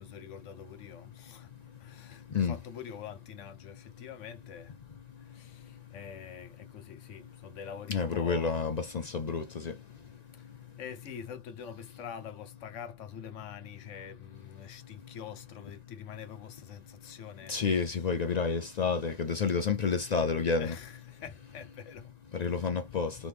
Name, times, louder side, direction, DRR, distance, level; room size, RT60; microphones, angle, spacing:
voice 1, 0.0-1.5 1.8-4.7 5.2-8.7 10.3-10.5 10.8-18.1 20.6-22.1 22.4-22.8, left 7 dB, 75° left, 1.1 m, -45 dB
voice 2, 7.9-9.7 17.5-20.8 22.3-23.1, left 5 dB, 60° left, 0.4 m, -29 dB
3.8 x 3.2 x 3.4 m
omnidirectional pair, 1.3 m